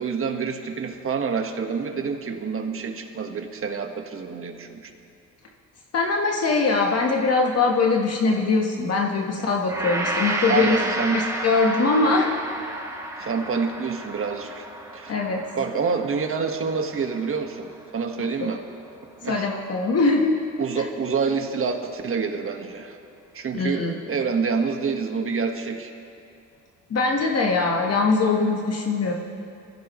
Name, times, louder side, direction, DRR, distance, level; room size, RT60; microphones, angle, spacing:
voice 1, 0.0-4.9 9.4-9.5 10.5-11.2 13.2-14.7 14.9-15.2 15.6-17.7 17.9-18.6 19.2-19.5 20.6-23.0 23.3-25.9, right 5 dB, 45° right, 4 dB, 1.6 m, -27 dB
voice 2, 5.9-10.8 11.1-12.3 13.2-13.3 15.1-15.4 19.3-20.4 20.8-20.9 23.5-23.9 26.9-29.1, left 3 dB, 55° left, 0 dB, 1.4 m, -22 dB
Gong, 9.7-18.1 18.5-18.6, right 1 dB, 10° right, 2.5 m, -32 dB
23.5 x 15.0 x 3.2 m, 2.6 s
cardioid pair, 90°, 30 cm